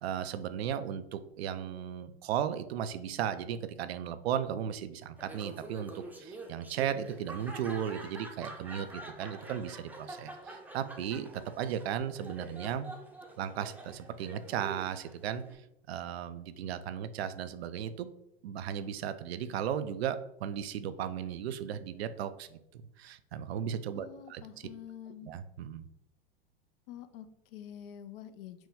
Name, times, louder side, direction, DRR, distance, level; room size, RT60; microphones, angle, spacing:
voice 1, 0.0-12.9 13.4-15.4 15.9-18.1 18.4-24.4 25.2-25.9, right 9 dB, 75° right, 12 dB, 0.5 m, -36 dB
Laughter, 5.2-15.5, right 2 dB, 5° right, 0.6 m, -46 dB
voice 2, 23.9-25.3 26.9-28.7, left 10 dB, 60° left, 11 dB, 0.6 m, -47 dB
6.0 x 2.2 x 3.5 m, 0.83 s
hypercardioid pair, 100°, 31 cm